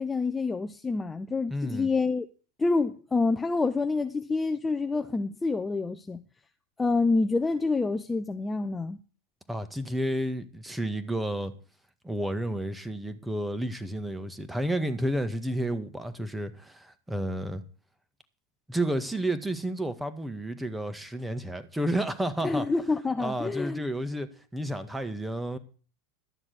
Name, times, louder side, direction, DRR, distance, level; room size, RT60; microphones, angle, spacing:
voice 1, 0.0-2.3 2.6-6.2 6.8-9.0 22.4-23.8, left 3 dB, 15° left, 0.7 m, -27 dB
voice 2, 1.5-1.9 9.5-11.5 12.0-17.6 18.7-22.7 23.2-25.6, right 1 dB, 5° right, 1.7 m, -31 dB
12.5 x 7.2 x 8.4 m
supercardioid pair, 120°, 0 cm